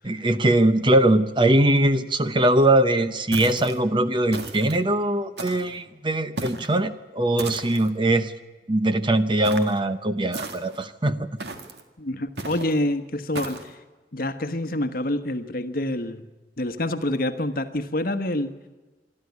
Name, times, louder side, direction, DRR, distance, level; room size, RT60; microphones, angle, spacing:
voice 1, 0.0-8.3 8.7-11.3, right 1 dB, 30° right, 11 dB, 0.8 m, -21 dB
sound 1, 3.3-3.8 4.3-4.8 5.4-5.8 6.4-6.7 7.4-7.9 9.4-9.8 10.3-10.8 11.4-11.8 12.4-12.7 13.3-13.7, right 3 dB, 70° right, 1.9 m, -35 dB
voice 2, 12.0-13.8 14.1-16.2 16.6-18.5, left 1 dB, 55° left, 10 dB, 1.3 m, -27 dB
26.0 x 12.0 x 9.5 m, 1.2 s
head